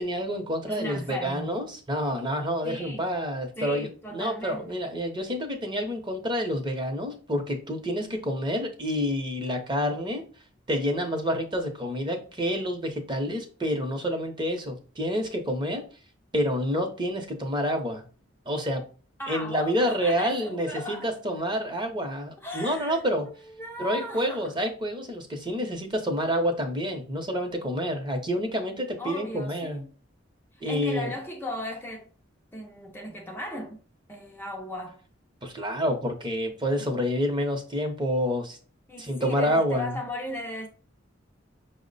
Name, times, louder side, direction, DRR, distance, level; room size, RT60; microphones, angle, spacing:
voice 1, 0.0-10.2 10.7-15.8 16.3-18.0 18.5-18.8 19.3-23.3 23.8-29.8 30.6-31.1 35.4-38.6 39.0-39.9, equal, 25° right, 0.8 m, -28 dB
voice 2, 0.7-1.6 2.6-3.1 3.6-4.8 19.2-21.1 22.4-24.5 29.0-29.9 30.5-32.1 32.5-33.8 34.1-35.0 38.9-40.7, left 1 dB, 10° left, 0.5 m, -37 dB
5.7 x 2.1 x 3.9 m
head